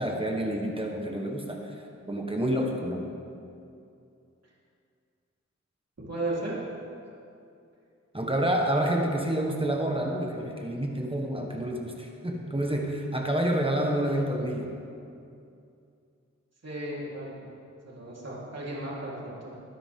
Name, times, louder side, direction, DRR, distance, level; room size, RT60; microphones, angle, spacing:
voice 1, 0.0-1.7 2.1-3.1 8.1-14.7, right 1 dB, 20° right, 0 dB, 1.5 m, -28 dB
voice 2, 6.0-6.7 16.6-17.5 17.8-19.5, right 1 dB, 60° right, -7 dB, 4.0 m, -35 dB
22.0 x 10.0 x 3.8 m, 2.6 s
wide cardioid pair, 75°, 29 cm